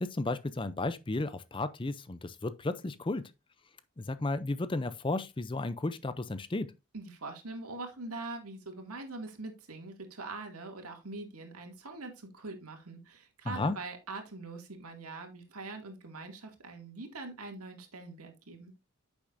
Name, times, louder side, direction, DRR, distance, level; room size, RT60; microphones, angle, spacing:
voice 1, 0.0-3.3 4.0-6.7 13.4-13.8, left 2 dB, 20° left, 0.5 m, -33 dB
voice 2, 6.9-18.7, right 3 dB, 90° right, 2.3 m, -43 dB
9.8 x 7.0 x 2.6 m
head